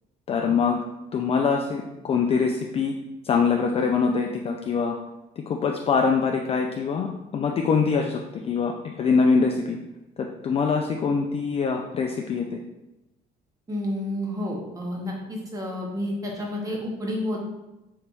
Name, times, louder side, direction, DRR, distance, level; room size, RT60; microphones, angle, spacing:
voice 1, 0.3-0.8 1.1-2.9 3.2-5.0 5.5-8.7 9.0-9.8 10.2-12.6, left 5 dB, 35° left, 1 dB, 0.3 m, -23 dB
voice 2, 13.7-17.4, left 1 dB, 20° right, -1 dB, 1.0 m, -30 dB
3.9 x 3.3 x 3.1 m, 0.98 s
cardioid pair, 110°, 17 cm